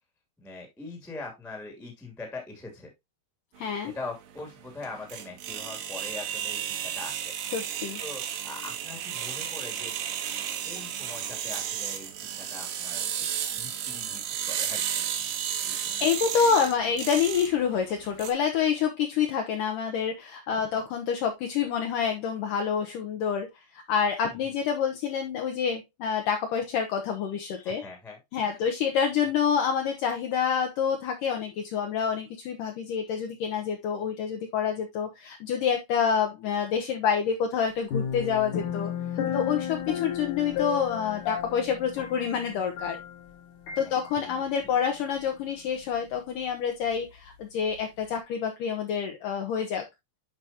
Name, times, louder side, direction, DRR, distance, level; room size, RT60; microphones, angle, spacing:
voice 1, 0.4-2.9 3.8-9.9 10.6-15.9 24.3-24.4 27.6-28.6 39.2-39.6 43.7-44.4, left 3 dB, ahead, 2 dB, 0.9 m, -43 dB
voice 2, 3.6-3.9 7.5-8.0 16.0-23.5 23.7-27.8 28.3-38.9 39.3-43.0 43.8-49.9, left 7 dB, 80° left, 4 dB, 1.9 m, -27 dB
sound 1, 3.6-18.3, right 9 dB, 70° right, 2.4 m, -33 dB
sound 2, 37.9-43.3 43.7-43.8, left 8 dB, 65° left, 2.2 m, -33 dB
10.5 x 4.9 x 2.8 m, 0.20 s
omnidirectional pair, 5.0 m